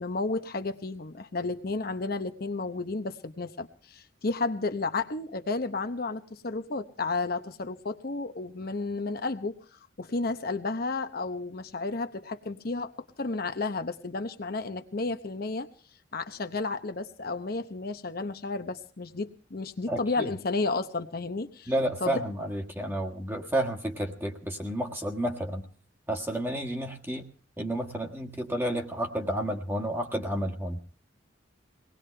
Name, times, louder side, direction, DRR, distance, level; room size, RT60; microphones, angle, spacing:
voice 1, 0.0-9.6 10.0-12.9 13.2-15.7 16.1-21.7 22.0-22.2, left 3 dB, 55° left, 8 dB, 0.9 m, -32 dB
voice 2, 19.9-20.3 21.7-25.6 26.1-27.3 27.6-30.8, right 1 dB, 10° right, 2 dB, 1.5 m, -31 dB
23.0 x 19.0 x 3.3 m, 0.38 s
head